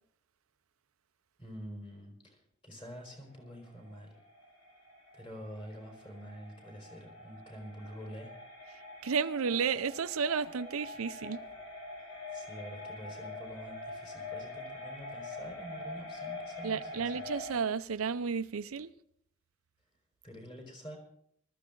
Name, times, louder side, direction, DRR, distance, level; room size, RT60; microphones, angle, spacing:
voice 1, 1.4-2.4 2.6-4.2 5.1-8.3 12.3-17.2 20.2-21.0, equal, 25° left, 4.7 m, -47 dB
sound 1, 2.8-17.5, left 2 dB, 75° left, 5.8 m, -45 dB
voice 2, 9.0-11.4 16.6-18.9, right 6 dB, 85° right, 0.6 m, -32 dB
19.5 x 13.5 x 3.8 m
head